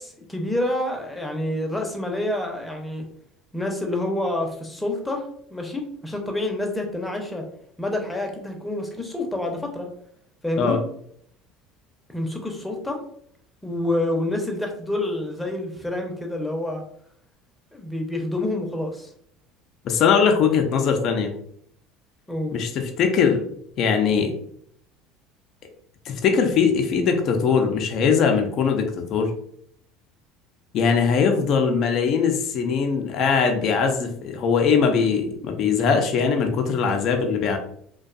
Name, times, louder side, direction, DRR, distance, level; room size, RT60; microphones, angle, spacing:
voice 1, 0.0-3.0 3.5-7.4 7.8-9.9 10.4-10.8 12.1-13.0 13.6-16.8 17.7-19.1 22.3-22.5, left 1 dB, 5° left, 2 dB, 0.7 m, -28 dB
voice 2, 19.8-21.3 22.5-23.4 23.8-24.3 26.1-29.3 30.7-37.6, left 6 dB, 55° left, 4 dB, 0.5 m, -21 dB
2.5 x 2.2 x 2.4 m, 0.66 s
hypercardioid pair, 80°, 0 cm